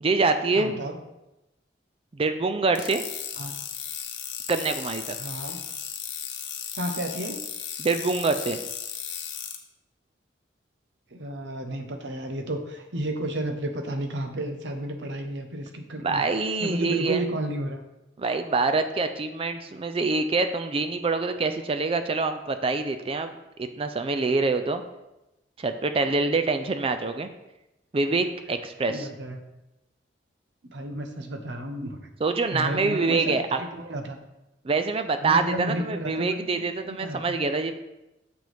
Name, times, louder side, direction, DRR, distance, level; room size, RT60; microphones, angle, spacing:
voice 1, 0.0-0.8 2.1-3.0 4.5-5.2 7.8-8.6 16.0-17.2 18.2-24.8 25.6-27.3 27.9-29.1 32.2-33.6 34.6-37.7, right 3 dB, 30° right, 9 dB, 0.4 m, -25 dB
voice 2, 0.6-1.0 3.4-3.6 5.2-5.6 6.8-7.5 11.1-16.2 16.6-17.8 28.9-29.5 30.6-32.0 32.5-34.2 35.2-37.4, right 1 dB, 85° right, 5 dB, 0.9 m, -32 dB
sound 1, 2.7-9.6, left 8 dB, 80° left, 0.9 m, -35 dB
7.0 x 6.3 x 3.4 m, 0.94 s
head